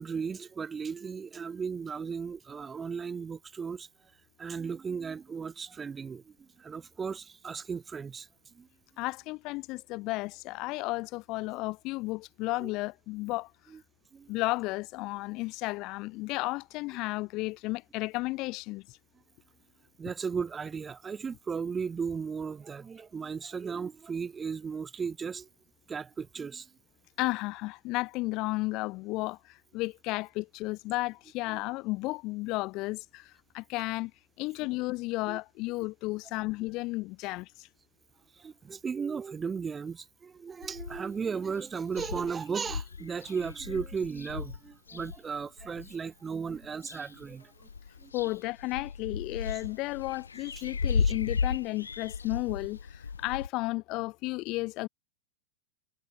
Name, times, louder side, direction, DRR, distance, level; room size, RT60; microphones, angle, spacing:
voice 1, 0.0-3.9 4.4-8.3 8.5-8.7 12.6-12.7 13.7-13.8 14.1-14.3 20.0-25.5 25.9-26.7 31.5-31.6 35.3-35.4 38.4-47.5 48.0-48.1 49.5-49.6 50.6-50.7 51.0-51.1, right 6 dB, 15° right, 0.5 m, -36 dB
voice 2, 9.0-13.5 14.3-18.9 27.2-34.1 34.4-37.7 48.1-54.9, left 22 dB, 40° left, 0.6 m, -33 dB
sound 1, 40.6-41.2 41.6-41.7 41.9-45.9 46.5-47.3 47.6-53.5, left 5 dB, 75° left, 0.8 m, -35 dB
figure-of-eight pair, 90°, 0 cm